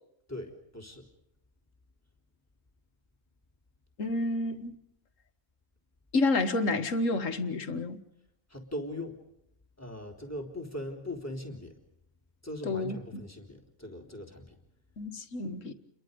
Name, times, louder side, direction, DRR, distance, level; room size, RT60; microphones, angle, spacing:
voice 1, 0.3-1.1 8.5-9.2 9.8-11.8 12.4-14.6, left 1 dB, 10° left, 3.7 m, -40 dB
voice 2, 4.0-4.7 6.1-8.0 12.6-13.0 15.0-15.7, left 2 dB, 70° left, 2.0 m, -29 dB
30.0 x 22.5 x 5.3 m
omnidirectional pair, 1.4 m